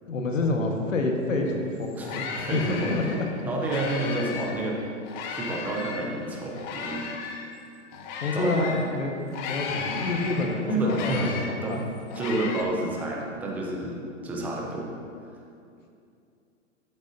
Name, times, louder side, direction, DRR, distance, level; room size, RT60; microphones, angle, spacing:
voice 1, 0.1-2.6 2.9-3.3 8.2-11.8, left 2 dB, 90° left, 2 dB, 1.4 m, -28 dB
sound 1, 1.5-1.6 1.8-4.6 5.0-8.9 9.3-12.6, left 5 dB, 35° left, 1.0 m, -35 dB
voice 2, 2.4-3.2 3.4-4.8 5.3-7.1 8.3-8.9 10.7-11.3 11.6-11.8 12.1-14.9, right 2 dB, 5° right, -2 dB, 0.3 m, -29 dB
11.5 x 8.0 x 2.7 m, 2.5 s
hypercardioid pair, 130°, 37 cm